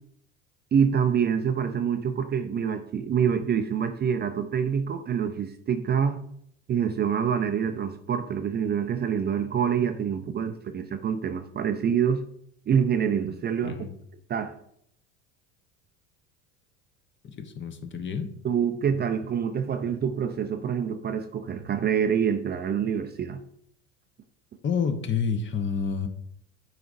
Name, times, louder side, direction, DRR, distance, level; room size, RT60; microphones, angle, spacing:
voice 1, 0.7-6.2 6.7-12.2 12.7-13.8 14.3-14.5 18.4-23.4, right 7 dB, 25° right, 8 dB, 0.5 m, -26 dB
voice 2, 13.6-13.9 17.2-18.3 24.6-26.1, left 6 dB, 30° left, 8 dB, 1.0 m, -29 dB
9.1 x 5.0 x 2.6 m, 0.68 s
hypercardioid pair, 80°, 36 cm